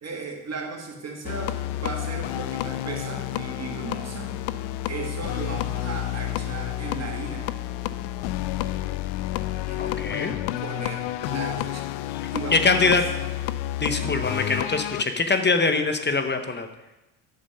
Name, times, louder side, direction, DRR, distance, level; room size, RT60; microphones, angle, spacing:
voice 1, 0.0-4.4 4.9-7.5 9.7-11.9 12.3-13.0 13.9-14.2, right 4 dB, 35° right, 2 dB, 1.9 m, -36 dB
sound 1, 1.2-15.0, left 14 dB, 90° left, 0.5 m, -30 dB
voice 2, 9.8-10.3 12.5-13.0 13.8-16.7, left 4 dB, 25° left, 7 dB, 0.9 m, -23 dB
8.8 x 6.9 x 5.6 m, 1.0 s
supercardioid pair, 85°, 44 cm